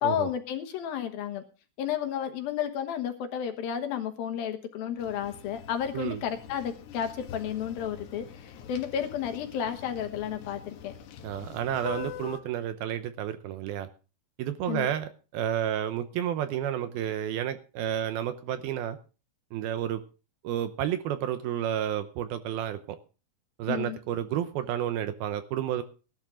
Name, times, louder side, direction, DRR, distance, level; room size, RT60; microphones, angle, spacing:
voice 1, 0.0-1.4 1.8-10.9 14.7-14.9 23.7-24.0, left 9 dB, 70° left, 7 dB, 2.8 m, -32 dB
sound 1, 5.0-12.4, left 8 dB, 85° left, 3.6 m, -44 dB
voice 2, 11.2-13.9 14.4-19.0 19.5-20.0 20.4-23.0 23.6-25.8, right 10 dB, 75° right, 10 dB, 2.5 m, -31 dB
17.0 x 12.0 x 3.7 m, 0.34 s
omnidirectional pair, 4.8 m